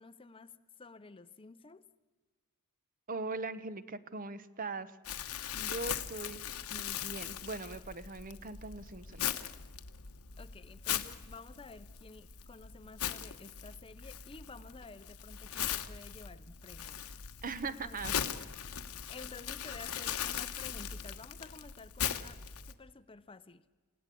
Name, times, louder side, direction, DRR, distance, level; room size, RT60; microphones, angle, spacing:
voice 1, 0.0-1.8 10.4-17.0 17.7-18.2 19.1-23.6, left 3 dB, 25° left, 0.6 m, -52 dB
voice 2, 3.1-5.2 5.5-6.4 6.7-9.2 17.4-18.3, right 3 dB, 40° right, 0.9 m, -41 dB
Crumpling crinkling, 5.0-22.7, left 9 dB, 85° left, 1.2 m, -40 dB
29.0 x 17.0 x 8.5 m
head